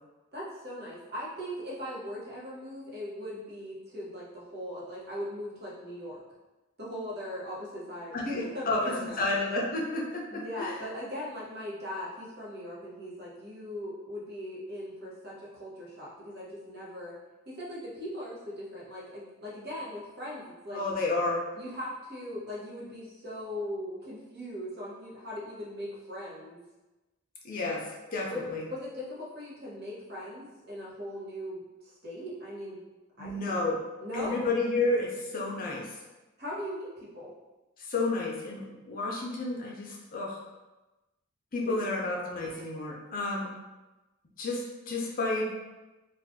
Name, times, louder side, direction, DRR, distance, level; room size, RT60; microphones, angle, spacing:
voice 1, 0.3-6.2 6.8-9.2 10.3-17.1 17.5-20.8 21.6-26.6 28.3-32.8 33.2-33.7 34.0-34.4 36.4-37.3 41.6-41.8, equal, 50° right, -6 dB, 0.9 m, -39 dB
voice 2, 8.1-8.8 9.2-10.1 10.3-10.8 20.7-21.4 27.4-27.8 28.1-28.6 33.2-33.8 34.1-35.9 37.9-40.5 41.5-43.5 44.4-45.5, left 2 dB, 45° left, -3 dB, 0.5 m, -31 dB
2.5 x 2.3 x 3.5 m, 1.1 s
head